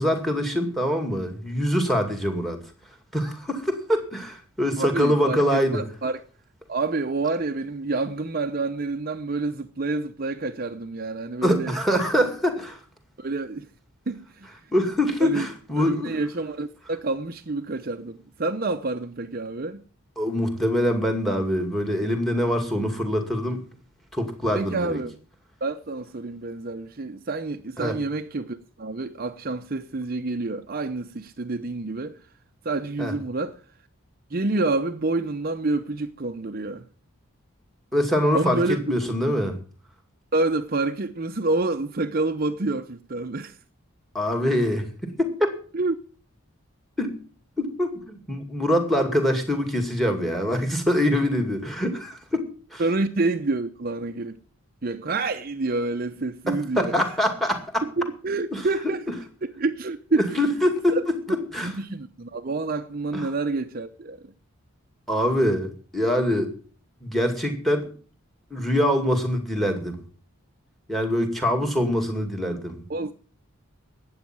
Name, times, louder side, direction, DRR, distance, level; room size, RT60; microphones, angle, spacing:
voice 1, 0.0-2.6 3.1-5.8 11.4-12.8 14.7-16.1 20.2-23.6 24.1-25.0 27.8-28.0 33.0-33.1 37.9-39.6 44.1-45.5 47.0-47.1 47.6-52.4 52.7-52.8 56.5-57.8 58.5-58.9 60.2-61.8 63.1-63.3 65.1-66.5 67.0-67.9 68.5-70.0 70.9-72.8, equal, ahead, 2.2 m, -24 dB
voice 2, 4.8-6.2 6.7-11.8 13.2-13.7 14.1-14.5 15.2-15.5 15.8-19.8 24.5-25.1 25.6-32.2 32.6-33.6 34.3-36.9 38.3-38.8 39.0-39.1 40.3-43.6 45.7-46.0 52.8-54.4 54.8-57.0 57.8-59.0 59.6-60.4 60.9-61.0 61.6-64.3 72.9-73.1, right 3 dB, 40° right, 0.7 m, -28 dB
12.5 x 8.8 x 7.5 m
head